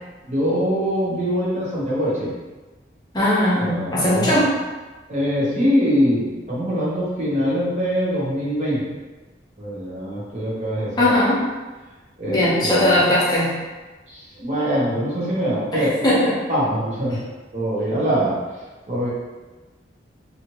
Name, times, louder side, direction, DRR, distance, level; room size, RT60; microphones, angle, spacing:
voice 1, 0.2-2.3 3.6-4.5 5.1-8.9 9.6-11.1 12.2-13.1 14.1-15.9 16.5-17.2 17.5-18.4 18.9-19.1, equal, 40° right, -7 dB, 0.8 m, -23 dB
voice 2, 3.1-4.6 11.0-11.4 12.3-13.5 15.7-16.3 17.9-18.0, left 1 dB, 20° left, -8 dB, 0.7 m, -19 dB
2.8 x 2.4 x 2.9 m, 1.2 s
head